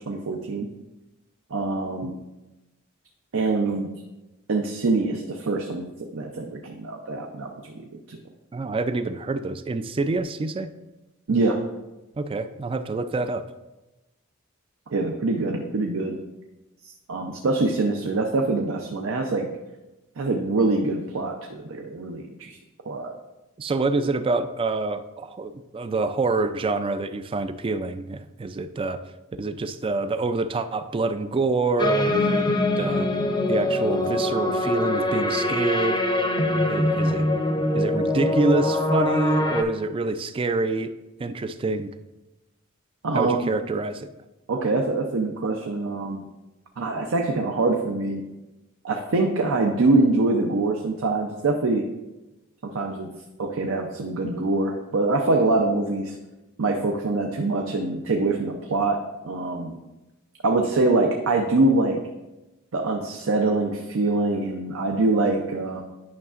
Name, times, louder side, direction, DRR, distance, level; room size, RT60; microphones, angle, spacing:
voice 1, 0.1-0.7 1.5-2.1 3.3-3.9 4.5-7.8 8.1-8.2 11.3-11.6 14.9-16.2 17.1-19.5 20.2-22.6 22.9-23.1 43.0-43.5 44.5-46.2 46.8-48.2 48.8-51.9 52.6-53.1 53.4-56.2 56.6-59.7 60.4-62.0 62.7-65.8, right 2 dB, 65° right, 3 dB, 0.6 m, -24 dB
voice 2, 8.5-10.7 12.2-13.4 23.6-29.0 29.4-32.5 32.8-33.1 33.5-36.0 36.7-37.3 37.7-40.9 41.2-41.9 43.1-44.1, right 3 dB, 25° right, 11 dB, 0.3 m, -26 dB
sound 1, 31.8-39.6, left 1 dB, 20° left, 0.6 m, -23 dB
9.5 x 5.6 x 2.4 m, 1.0 s
head